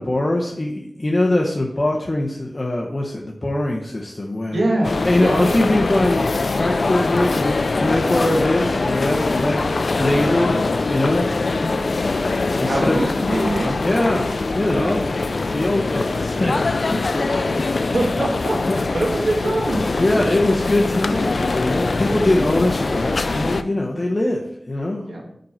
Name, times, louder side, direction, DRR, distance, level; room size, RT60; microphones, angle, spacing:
voice 1, 0.0-4.6 5.0-9.6 9.9-11.3 12.6-13.0 13.8-15.0 15.5-16.6 16.9-17.0 17.3-17.6 18.7-18.8 20.0-25.0, left 1 dB, 40° left, -1 dB, 0.9 m, -22 dB
voice 2, 4.5-4.9 5.2-5.4 12.7-13.8 14.7-15.0 17.1-17.5 17.9-20.5 25.1-25.2, right 1 dB, 85° right, -1 dB, 1.7 m, -24 dB
sound 1, 4.8-23.6, left 3 dB, 75° left, 0.4 m, -22 dB
5.5 x 5.2 x 4.5 m, 0.73 s
wide cardioid pair, 50°, 0 cm